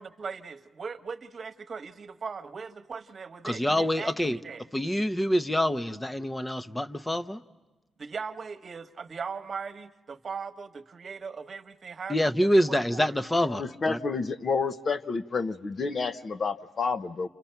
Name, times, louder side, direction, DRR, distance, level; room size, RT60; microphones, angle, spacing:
voice 1, 0.0-4.7 8.0-13.2, right 5 dB, 45° right, 1.3 m, -39 dB
voice 2, 3.4-4.4 4.7-7.4 12.1-14.0, equal, 10° left, 0.8 m, -26 dB
voice 3, 13.5-17.3, left 4 dB, 45° left, 0.9 m, -29 dB
29.0 x 29.0 x 5.8 m
cardioid pair, 85°, 0 cm